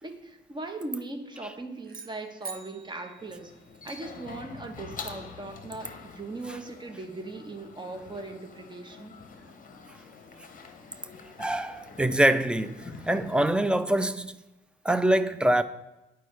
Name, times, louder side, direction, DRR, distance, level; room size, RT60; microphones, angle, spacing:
voice 1, 0.0-3.5 3.8-9.1, right 2 dB, 20° right, 1.0 m, -39 dB
sound 1, 1.8-4.2, right 5 dB, 50° right, 0.9 m, -45 dB
sound 2, 3.2-13.5, left 5 dB, 45° left, 0.9 m, -46 dB
voice 2, 11.4-14.4 14.8-15.6, right 1 dB, 5° right, 0.4 m, -24 dB
11.0 x 4.6 x 3.2 m
cardioid pair, 90°, 20 cm